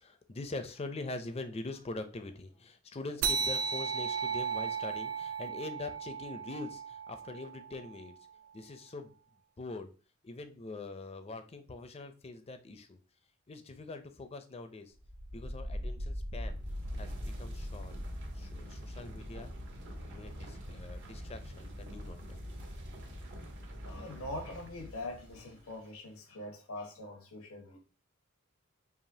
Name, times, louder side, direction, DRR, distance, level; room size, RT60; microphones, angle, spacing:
voice 1, 0.0-8.1 8.5-9.1 9.6-9.9 10.2-13.0 13.5-14.9 15.3-16.6 17.0-17.9 18.4-19.5 20.0-22.4, left 2 dB, 30° left, 0.5 m, -43 dB
sound 1, 3.2-8.1, right 6 dB, 75° right, 0.4 m, -35 dB
sound 2, 14.9-25.8, equal, 60° right, 0.9 m, -42 dB
voice 2, 23.8-27.8, left 1 dB, 90° left, 0.8 m, -43 dB
4.9 x 2.8 x 2.7 m
head